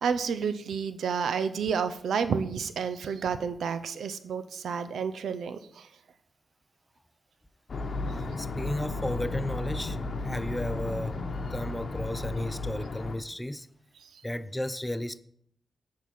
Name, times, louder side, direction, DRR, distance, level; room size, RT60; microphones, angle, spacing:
voice 1, 0.0-5.9 14.0-14.1, right 6 dB, 80° right, 0.5 m, -30 dB
sound 1, 7.7-13.2, left 3 dB, 60° left, 0.9 m, -34 dB
voice 2, 8.1-10.0 10.2-13.7 14.2-15.2, left 1 dB, 10° left, 0.4 m, -34 dB
8.1 x 3.8 x 5.9 m
cardioid pair, 55°, 0 cm